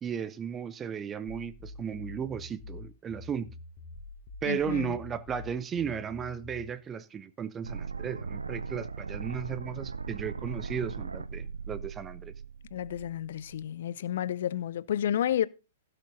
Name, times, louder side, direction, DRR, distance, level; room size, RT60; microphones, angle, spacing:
voice 1, 0.0-3.5 4.4-12.3, right 7 dB, 20° right, 0.6 m, -35 dB
sound 1, 1.3-6.7, left 3 dB, 30° left, 3.0 m, -45 dB
voice 2, 4.4-5.0 12.7-15.5, left 10 dB, 55° left, 0.5 m, -31 dB
sound 2, 7.6-13.6, right 5 dB, 75° right, 0.6 m, -39 dB
16.5 x 6.7 x 3.9 m
figure-of-eight pair, 105°, 0 cm